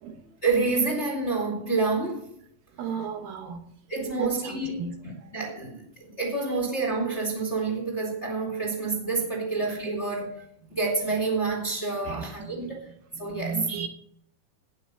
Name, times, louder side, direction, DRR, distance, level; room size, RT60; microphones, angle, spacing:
voice 1, 0.4-2.3 3.9-10.4 10.7-12.9 13.2-13.6, right 3 dB, 20° left, 0 dB, 2.0 m, -28 dB
voice 2, 2.8-3.6 4.2-5.0 5.2-5.3 6.5-6.6 9.4-9.5 12.0-12.7 13.1-13.9, right 6 dB, 70° right, 6 dB, 2.6 m, -35 dB
17.5 x 6.0 x 6.8 m, 0.68 s
omnidirectional pair, 4.8 m